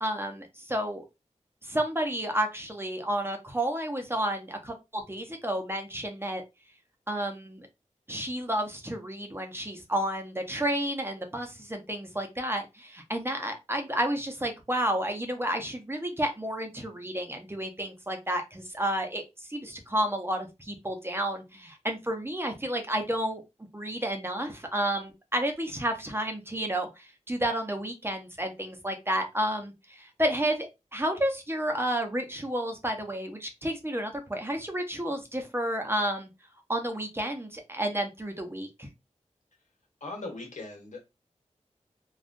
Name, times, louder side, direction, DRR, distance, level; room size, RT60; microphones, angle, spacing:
voice 1, 0.0-1.0 1.6-6.4 7.1-7.7 8.1-23.4 23.7-36.3 36.7-38.9, right 1 dB, 20° right, 4 dB, 0.8 m, -31 dB
voice 2, 40.0-41.1, left 2 dB, 80° left, 1 dB, 1.3 m, -39 dB
3.6 x 2.4 x 2.5 m, 0.23 s
wide cardioid pair, 65°, 12 cm